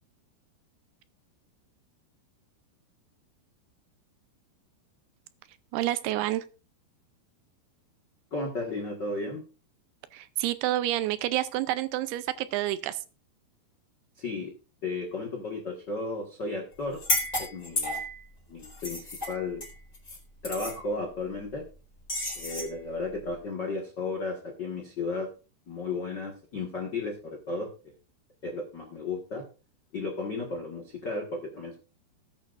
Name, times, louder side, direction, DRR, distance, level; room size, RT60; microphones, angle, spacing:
voice 1, 5.7-6.4 10.1-13.0, right 14 dB, 80° right, 13 dB, 2.5 m, -29 dB
voice 2, 8.3-9.4 14.2-14.5 14.8-17.0 17.4-18.0 18.5-19.6 20.4-21.6 22.3-25.3 25.7-27.7 28.4-29.4 29.9-31.8, left 3 dB, 80° left, 0 dB, 0.9 m, -34 dB
sound 1, 16.9-18.2 18.6-20.2 20.4-20.8 22.1-22.7, left 1 dB, 20° left, 4.3 m, -32 dB
19.0 x 8.9 x 2.5 m, 0.33 s
omnidirectional pair, 4.8 m